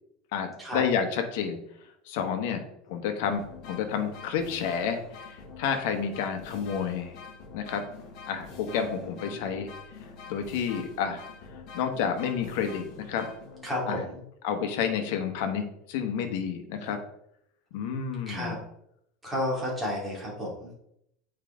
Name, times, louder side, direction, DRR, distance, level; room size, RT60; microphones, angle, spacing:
voice 1, 0.3-1.6 2.1-2.6 2.9-5.0 5.6-7.2 7.5-7.9 8.3-9.7 10.3-11.2 11.7-13.3 13.9-14.0 14.4-17.0 17.7-18.5, left 7 dB, 60° left, 6 dB, 1.2 m, -30 dB
sound 1, 3.3-13.9, left 4 dB, 45° left, 1.3 m, -46 dB
voice 2, 8.6-9.5 13.6-14.2 16.8-16.9 18.3-18.6 19.2-20.7, left 1 dB, 5° right, -5 dB, 2.4 m, -33 dB
8.2 x 4.8 x 3.7 m, 0.75 s
supercardioid pair, 175°, 0 cm